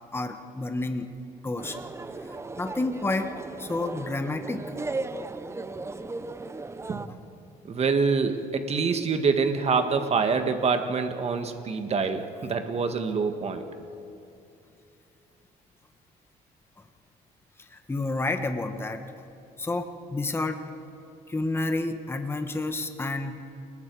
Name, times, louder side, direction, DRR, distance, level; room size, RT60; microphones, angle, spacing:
voice 1, 0.1-1.1 1.4-1.8 2.3-3.3 3.6-4.6 17.6-19.0 19.6-20.6 21.3-23.4, left 2 dB, 15° left, 7 dB, 1.2 m, -30 dB
sound 1, 1.6-7.1, right 3 dB, 15° right, 0.7 m, -36 dB
voice 2, 7.7-13.7, right 5 dB, 40° right, 7 dB, 1.7 m, -26 dB
29.5 x 19.5 x 4.8 m, 2.7 s
cardioid pair, 110°, 17 cm